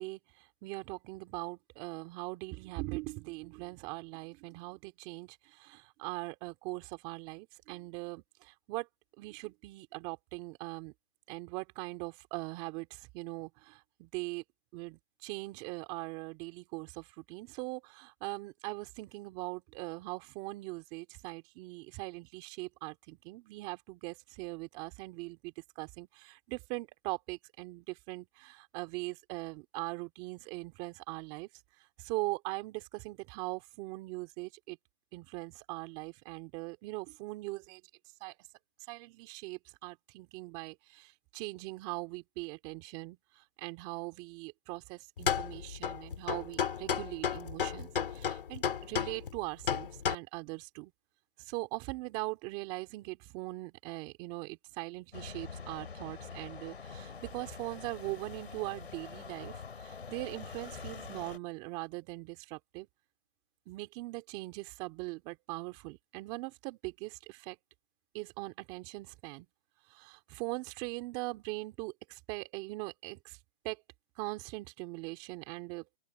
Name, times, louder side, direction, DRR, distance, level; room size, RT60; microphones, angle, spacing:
voice 1, 0.0-8.9 9.2-10.9 11.3-14.4 14.7-31.5 32.0-34.8 35.1-37.8 38.2-38.4 38.9-50.9 51.4-62.9 63.7-67.6 68.1-69.5 69.9-73.4 73.6-73.8 74.2-75.8, right 23 dB, 15° right, 2.4 m, -41 dB
sound 1, 45.2-50.2, left 7 dB, 55° left, 2.5 m, -33 dB
sound 2, 55.1-61.4, left 5 dB, 75° left, 4.6 m, -45 dB
open air
hypercardioid pair, 165°, 32 cm